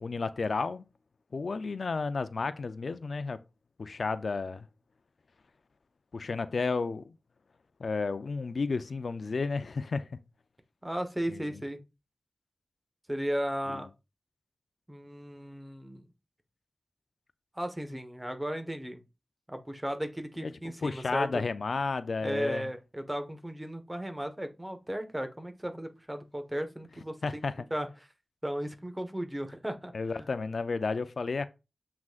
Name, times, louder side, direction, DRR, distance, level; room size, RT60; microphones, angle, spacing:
voice 1, 0.0-0.8 1.3-3.4 3.8-4.7 6.1-7.1 7.8-10.1 20.4-20.5 20.8-22.6 27.2-27.5 29.9-31.5, left 4 dB, 75° left, 0.5 m, -32 dB
voice 2, 10.8-11.8 13.1-13.9 14.9-16.0 17.5-19.0 19.5-21.5 22.2-27.4 27.7-28.1 28.4-29.9 30.2-30.3, equal, 15° right, 1.3 m, -35 dB
7.6 x 6.0 x 2.5 m
wide cardioid pair, 55°, 0 cm